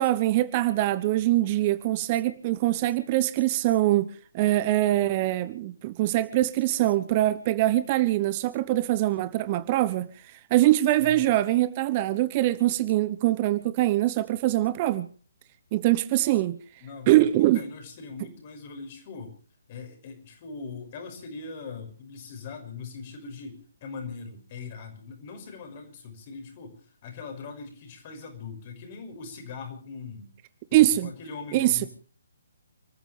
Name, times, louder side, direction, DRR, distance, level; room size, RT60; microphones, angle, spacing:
voice 1, 0.0-4.1 4.3-10.1 10.5-15.0 15.7-16.6 17.1-17.6 30.7-31.1 31.5-31.9, right 15 dB, 30° right, 15 dB, 0.9 m, -23 dB
voice 2, 16.8-19.3 19.7-30.3 30.7-31.9, left 4 dB, 35° left, 5 dB, 5.9 m, -41 dB
30.0 x 14.5 x 3.3 m, 0.41 s
figure-of-eight pair, 135°, 0 cm